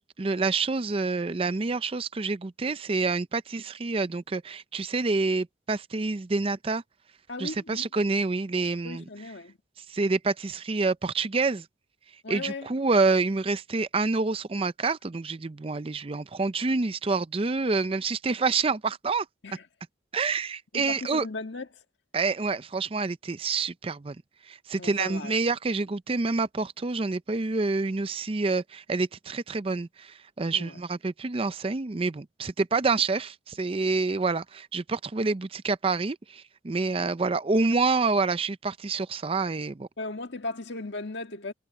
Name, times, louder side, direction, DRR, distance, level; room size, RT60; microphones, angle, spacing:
voice 1, 0.0-6.8 7.4-9.0 9.8-11.7 12.3-19.3 20.1-21.3 22.1-24.2 24.5-39.9, right 3 dB, 30° right, 0.5 m, -27 dB
voice 2, 7.3-7.9 8.8-9.6 12.2-12.7 19.4-19.6 20.7-21.7 24.8-25.4 30.5-30.8 40.0-41.5, left 2 dB, 70° left, 1.7 m, -36 dB
head